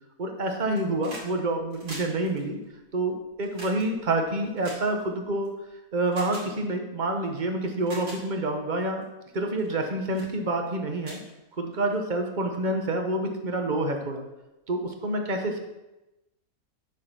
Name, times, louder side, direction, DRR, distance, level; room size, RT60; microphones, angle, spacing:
voice 1, 0.2-2.6 2.9-5.5 5.9-9.0 9.3-11.2 11.6-14.2 14.7-15.6, right 2 dB, 35° right, 4 dB, 1.0 m, -28 dB
sound 1, 0.6-1.3 1.6-5.5 6.1-6.5 7.2-7.3 7.7-8.2 8.8-9.0 9.6-9.8 10.1-10.3 10.7-10.8 11.0-11.9 13.1-13.2, right 1 dB, 90° right, 3.6 m, -43 dB
8.2 x 4.9 x 6.1 m, 0.97 s
omnidirectional pair, 1.7 m